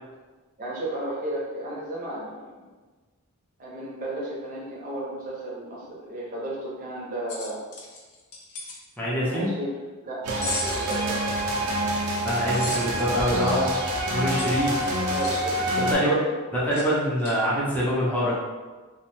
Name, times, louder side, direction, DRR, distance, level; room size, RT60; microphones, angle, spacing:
voice 1, 0.6-2.7 3.6-7.6 9.2-9.7 10.0-11.2 14.1-14.3 15.1-15.7 15.9-16.4, right 1 dB, 40° right, -5 dB, 0.6 m, -33 dB
sound 1, 7.3-8.8 10.4-11.1 12.5-13.1 14.3-15.4 16.7-16.9 17.2-17.4, left 3 dB, 85° left, 0.5 m, -35 dB
voice 2, 9.0-9.5 12.2-13.7 14.1-14.8 15.8-16.1 16.5-18.4, equal, 5° left, -8 dB, 0.5 m, -25 dB
sound 2, 10.2-15.9, right 1 dB, 85° right, 0.5 m, -26 dB
2.5 x 2.1 x 2.9 m, 1.3 s
head